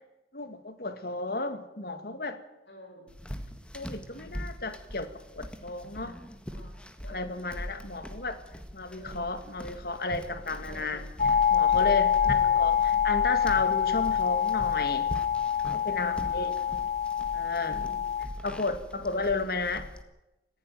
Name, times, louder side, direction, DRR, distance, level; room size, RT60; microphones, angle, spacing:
voice 1, 0.3-2.4 3.7-5.1 5.3-6.1 7.1-8.4 8.7-11.0 11.5-12.2 12.6-12.7 13.0-15.1 15.7-16.5 17.3-17.8 18.4-19.9, left 3 dB, 60° left, 9 dB, 2.1 m, -33 dB
voice 2, 2.7-3.2 6.5-7.9 8.9-9.2 10.6-11.2 12.2-12.6 16.0-16.9 17.7-18.1 19.0-19.3, left 1 dB, 75° left, 2 dB, 7.2 m, -49 dB
sound 1, 3.1-20.0, equal, 5° left, 1.7 m, -41 dB
sound 2, 11.2-18.3, left 8 dB, 40° left, 1.0 m, -26 dB
20.0 x 15.5 x 9.3 m, 0.95 s
head